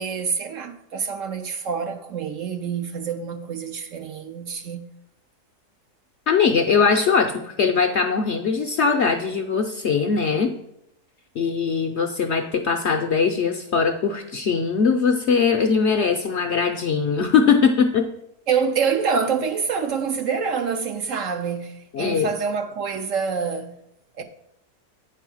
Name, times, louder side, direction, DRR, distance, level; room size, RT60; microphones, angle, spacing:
voice 1, 0.0-4.9 18.5-23.8 24.2-24.3, right 6 dB, 65° right, 0.9 m, -26 dB
voice 2, 6.3-10.5 11.4-18.1 21.9-22.3, left 5 dB, 60° left, 0.7 m, -21 dB
9.0 x 4.6 x 6.2 m
omnidirectional pair, 1.7 m